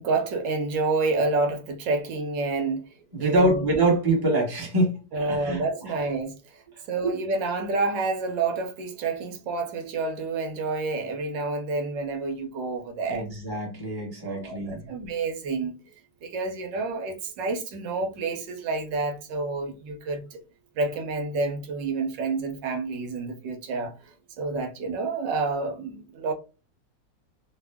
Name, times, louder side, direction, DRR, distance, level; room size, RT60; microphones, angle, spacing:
voice 1, 0.0-2.8 3.2-3.7 5.1-6.6 6.9-13.2 14.2-15.7 16.2-20.4 20.7-23.9 24.3-26.3, right 3 dB, 80° right, 1.4 m, -29 dB
voice 2, 3.1-5.6 7.0-7.2 13.1-14.9, right 2 dB, 15° right, 1.0 m, -25 dB
3.3 x 2.2 x 3.3 m
omnidirectional pair, 2.0 m